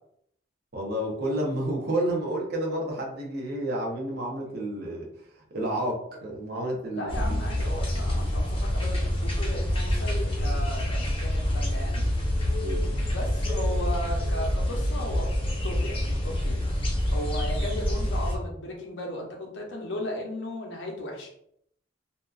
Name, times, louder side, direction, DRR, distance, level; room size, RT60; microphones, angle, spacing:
voice 1, 0.7-5.1 5.5-7.4 12.6-12.9, right 1 dB, 55° right, -1 dB, 0.7 m, -30 dB
voice 2, 6.9-12.0 12.8-15.3 15.6-16.6 17.1-21.3, left 1 dB, 70° left, 0 dB, 0.7 m, -36 dB
sound 1, 7.1-18.4, left 1 dB, 30° left, 0.7 m, -27 dB
2.7 x 2.3 x 2.3 m, 0.71 s
head